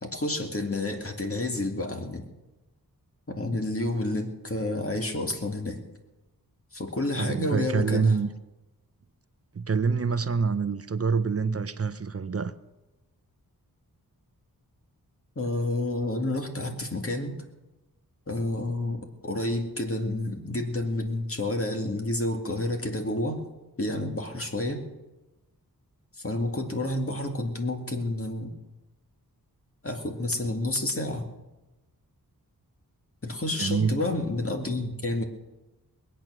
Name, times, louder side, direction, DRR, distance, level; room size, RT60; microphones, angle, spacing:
voice 1, 0.0-2.2 3.3-5.8 6.7-8.2 15.4-17.3 18.3-23.4 23.8-24.8 26.2-28.6 29.8-31.3 33.2-35.2, left 2 dB, 35° left, 2.1 m, -29 dB
voice 2, 7.2-8.3 9.5-12.5 33.6-34.0, right 5 dB, 40° right, 0.7 m, -26 dB
20.5 x 9.1 x 6.3 m
wide cardioid pair, 75°, 37 cm